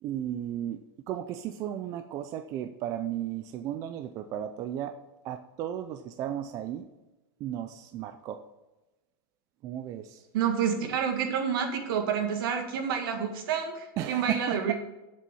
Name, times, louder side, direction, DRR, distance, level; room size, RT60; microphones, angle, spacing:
voice 1, 0.0-0.8 1.1-5.0 5.2-6.8 7.4-8.4 9.6-10.2 14.0-14.7, right 11 dB, 25° right, 8 dB, 0.4 m, -34 dB
voice 2, 10.3-14.7, right 7 dB, 65° right, 4 dB, 2.0 m, -29 dB
7.6 x 7.0 x 7.0 m, 1.0 s
supercardioid pair, 170°, 12 cm